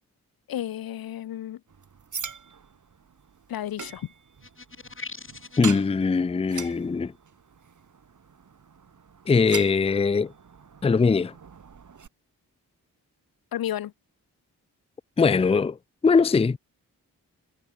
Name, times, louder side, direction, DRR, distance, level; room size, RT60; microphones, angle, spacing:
voice 1, 0.5-1.6 3.5-4.1 13.5-13.9, left 11 dB, 65° left, 0.6 m, -32 dB
sound 1, 1.7-12.1, right 6 dB, 50° right, 1.6 m, -42 dB
sound 2, 4.4-5.8, left 4 dB, 30° left, 2.0 m, -41 dB
voice 2, 5.6-7.1 9.3-10.3 10.8-11.3 15.2-15.8 16.0-16.6, left 4 dB, 15° left, 0.5 m, -21 dB
supercardioid pair, 40°, 38 cm